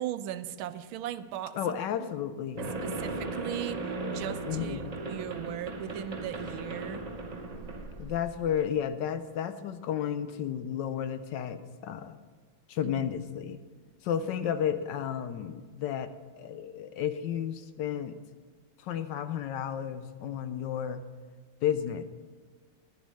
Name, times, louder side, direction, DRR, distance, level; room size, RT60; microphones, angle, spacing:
voice 1, 0.0-2.1 2.6-7.0 12.8-13.0, right 12 dB, 90° right, 12 dB, 1.4 m, -38 dB
voice 2, 1.5-2.7 4.5-4.9 8.0-12.2 12.7-13.6 14.0-16.1 16.4-18.2 18.8-21.0 21.6-22.0, left 9 dB, 70° left, 11 dB, 1.2 m, -32 dB
sound 1, 2.6-8.6, right 2 dB, 45° right, 0.5 m, -37 dB
11.0 x 10.5 x 5.4 m, 1.5 s
omnidirectional pair, 2.2 m